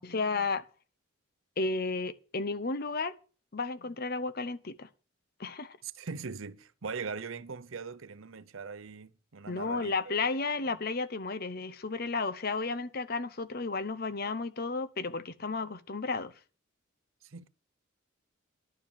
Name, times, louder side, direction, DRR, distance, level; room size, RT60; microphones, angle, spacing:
voice 1, 0.0-0.6 1.6-3.1 3.5-4.9 5.4-5.8 9.5-16.3, left 3 dB, 45° left, 0.8 m, -33 dB
voice 2, 5.8-10.1 17.2-17.5, right 5 dB, 70° right, 0.7 m, -41 dB
11.5 x 7.1 x 7.3 m
head